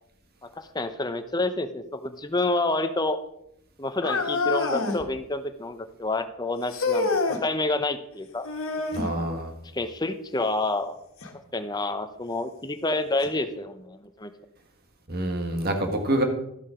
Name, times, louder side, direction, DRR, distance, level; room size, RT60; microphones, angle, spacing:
voice 1, 0.6-3.2 3.8-7.1 7.4-8.5 9.7-11.0 11.5-14.3, left 2 dB, 20° left, 9 dB, 0.7 m, -28 dB
sound 1, 4.0-5.1 6.7-7.4 8.4-9.1 11.2-11.3 12.2-12.3 13.2-13.3, left 3 dB, 65° left, 1.7 m, -26 dB
voice 2, 8.9-9.5 15.1-16.2, right 1 dB, 45° right, 4 dB, 1.7 m, -26 dB
12.5 x 7.2 x 5.0 m, 0.78 s
head